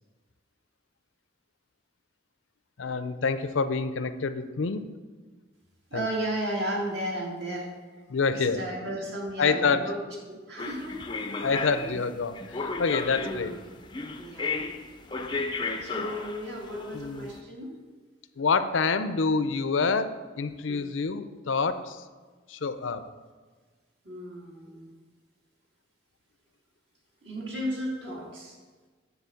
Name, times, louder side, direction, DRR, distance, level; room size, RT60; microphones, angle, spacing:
voice 1, 2.8-4.8 5.9-6.1 8.1-8.6 9.4-9.9 11.4-13.5 16.9-17.3 18.4-22.0 22.5-23.0, left 4 dB, 80° left, 11 dB, 0.6 m, -27 dB
voice 2, 5.9-7.7 8.3-11.1 13.2-13.6 14.2-14.5 15.8-17.8 20.7-20.8 24.0-24.9 27.2-28.6, right 1 dB, 60° right, -3 dB, 2.2 m, -34 dB
sound 1, 10.6-17.3, left 4 dB, 25° left, 0.5 m, -34 dB
9.3 x 4.1 x 7.1 m, 1.4 s
head